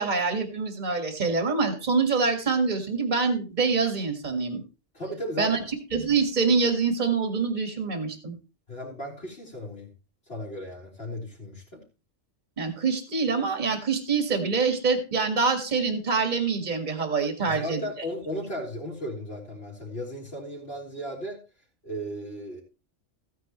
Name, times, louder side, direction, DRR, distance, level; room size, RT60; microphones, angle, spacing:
voice 1, 0.0-4.6 5.4-5.6 5.9-8.4 12.6-17.8, right 4 dB, 35° right, 6 dB, 2.0 m, -25 dB
voice 2, 4.9-5.7 8.7-9.9 10.3-11.8 17.4-21.4 21.8-22.6, equal, 55° left, -7 dB, 3.6 m, -35 dB
15.0 x 9.4 x 3.1 m, 0.30 s
omnidirectional pair, 1.3 m